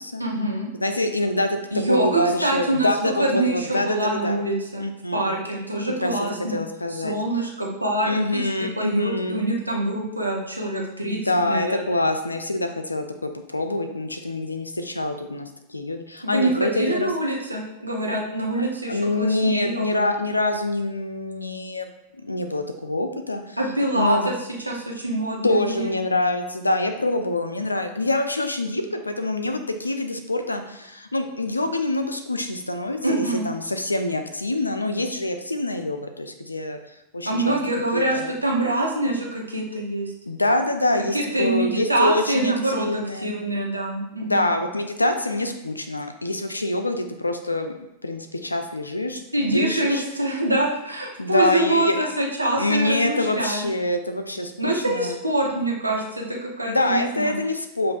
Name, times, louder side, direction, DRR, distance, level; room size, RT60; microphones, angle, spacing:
voice 1, 0.2-0.7 1.7-4.8 5.1-6.6 6.9-8.4 8.8-11.2 11.4-12.0 16.2-20.0 23.6-24.3 24.7-25.9 33.0-33.5 37.3-40.1 41.1-44.5 49.3-53.6 54.6-57.4, right 1 dB, 85° right, -2 dB, 0.8 m, -25 dB
voice 2, 0.8-1.6 1.9-4.4 4.8-5.3 6.0-6.1 6.5-7.1 8.0-9.5 11.1-17.1 18.9-21.9 22.2-23.6 23.9-24.3 25.4-36.8 37.1-37.6 37.9-38.3 40.3-43.4 44.2-47.7 48.0-49.2 49.5-50.0 51.2-52.0 52.5-55.2 56.7-57.9, left 2 dB, 80° left, 6 dB, 0.4 m, -25 dB
7.1 x 2.5 x 2.4 m, 0.87 s
figure-of-eight pair, 90°, 0 cm